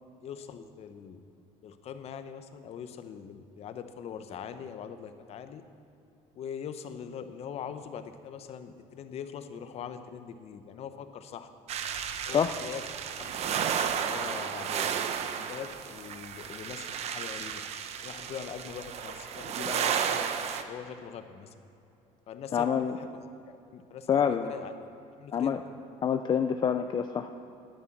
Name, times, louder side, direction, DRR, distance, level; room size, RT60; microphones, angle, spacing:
voice 1, 0.2-1.2 1.6-5.6 6.3-11.5 12.3-12.8 13.1-13.5 14.0-14.9 15.3-17.6 18.0-21.5 22.3-24.7 25.2-25.6, left 8 dB, 50° left, 9 dB, 0.8 m, -42 dB
sound 1, 11.7-20.6, right 8 dB, 50° right, 0.8 m, -33 dB
voice 2, 22.5-22.9 24.1-24.5 25.3-25.6 26.0-27.3, left 8 dB, 35° left, 7 dB, 0.4 m, -26 dB
10.5 x 9.7 x 7.3 m, 2.7 s
cardioid pair, 125°, 14 cm